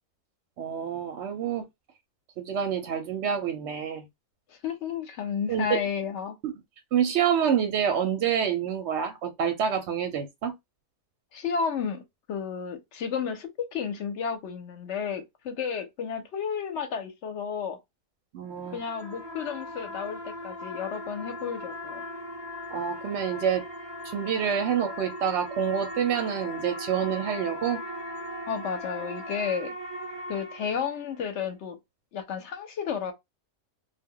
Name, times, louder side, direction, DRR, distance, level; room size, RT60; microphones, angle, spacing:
voice 1, 0.6-1.6 2.4-4.1 5.5-5.8 6.4-6.5 6.9-10.5 18.3-18.8 22.7-23.6 24.0-27.8, right 8 dB, 65° right, 0.7 m, -27 dB
voice 2, 4.5-6.4 11.3-12.0 12.3-17.8 18.7-22.0 28.5-29.7 30.3-31.8 32.1-33.1, left 6 dB, 60° left, 0.8 m, -32 dB
sound 1, 18.5-31.2, left 1 dB, 25° right, 0.7 m, -39 dB
2.2 x 2.1 x 3.6 m
omnidirectional pair, 1.5 m